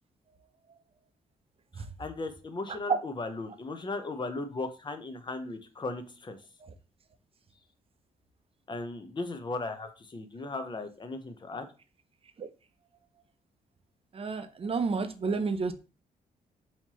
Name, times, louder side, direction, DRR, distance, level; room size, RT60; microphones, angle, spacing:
voice 1, 1.8-6.4 8.7-11.7, left 3 dB, 30° left, 8 dB, 0.7 m, -37 dB
voice 2, 14.2-15.7, right 4 dB, 40° right, 9 dB, 0.6 m, -30 dB
4.3 x 2.9 x 2.9 m, 0.34 s
cardioid pair, 80°, 16 cm